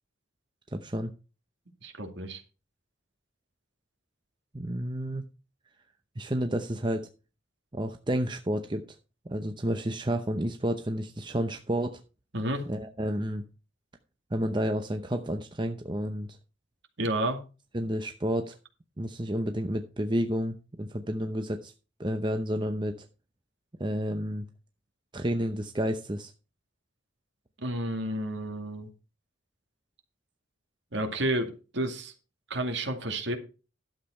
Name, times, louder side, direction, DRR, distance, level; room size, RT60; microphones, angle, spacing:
voice 1, 0.7-1.1 4.5-5.2 6.2-7.1 7.7-8.8 9.3-12.0 12.7-13.4 14.3-16.3 17.7-18.6 19.0-21.7 22.0-23.1 23.8-24.4 25.1-26.3, equal, 25° right, 6 dB, 0.7 m, -30 dB
voice 2, 1.8-2.4 12.3-12.6 17.0-17.4 27.6-28.9 30.9-32.1 32.5-33.4, right 1 dB, 60° right, 6 dB, 2.2 m, -31 dB
12.0 x 7.6 x 4.4 m, 0.32 s
head